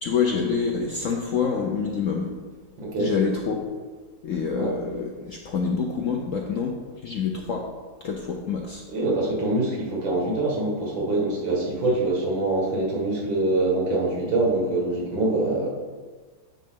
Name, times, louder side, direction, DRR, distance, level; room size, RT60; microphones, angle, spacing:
voice 1, 0.0-2.3 3.0-3.7 4.2-7.7 8.0-8.8, left 6 dB, 70° left, 1 dB, 0.7 m, -27 dB
voice 2, 2.8-3.1 4.6-4.7 8.9-15.7, right 2 dB, 80° right, -2 dB, 2.5 m, -24 dB
9.4 x 5.1 x 3.7 m, 1.4 s
omnidirectional pair, 2.1 m